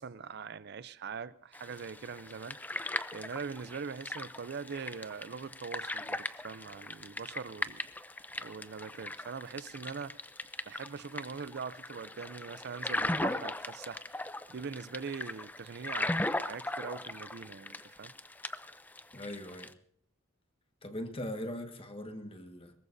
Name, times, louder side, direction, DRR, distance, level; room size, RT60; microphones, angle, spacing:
voice 1, 0.0-2.6 3.1-7.8 8.4-10.2 10.7-14.2 14.5-18.1, right 5 dB, 55° right, 0.5 m, -42 dB
sound 1, 1.5-19.7, left 2 dB, 10° left, 0.5 m, -38 dB
voice 2, 19.1-19.7 20.8-22.7, left 1 dB, 25° left, 1.5 m, -40 dB
21.5 x 18.5 x 2.6 m
head